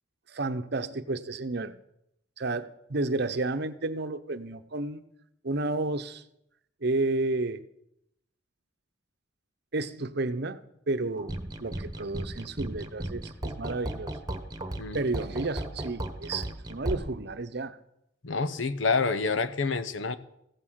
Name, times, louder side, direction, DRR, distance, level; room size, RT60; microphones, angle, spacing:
voice 1, 0.3-1.7 2.4-5.0 5.4-6.2 6.8-7.6 9.7-10.6 10.9-14.1 14.9-17.8, right 2 dB, 55° right, 11 dB, 0.8 m, -31 dB
sound 1, 11.2-17.0, right 1 dB, 20° right, 1.3 m, -35 dB
voice 2, 18.2-20.2, left 4 dB, 75° left, 13 dB, 0.9 m, -28 dB
15.0 x 8.6 x 7.5 m, 0.79 s
head